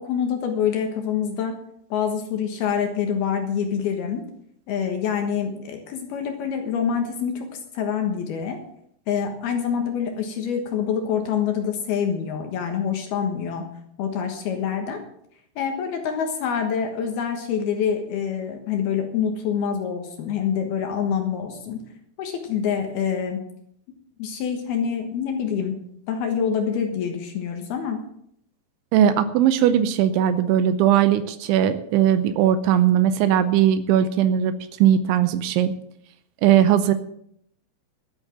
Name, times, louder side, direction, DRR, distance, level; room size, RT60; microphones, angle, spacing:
voice 1, 0.0-1.6 1.9-4.2 4.7-8.6 9.1-13.6 14.0-15.0 15.6-21.8 22.2-23.4 24.2-25.8 26.1-28.0, left 7 dB, 65° left, 4 dB, 2.9 m, -26 dB
voice 2, 28.9-35.7 36.4-36.9, right 10 dB, 80° right, 12 dB, 3.0 m, -19 dB
13.0 x 9.0 x 7.3 m, 0.70 s
omnidirectional pair, 5.6 m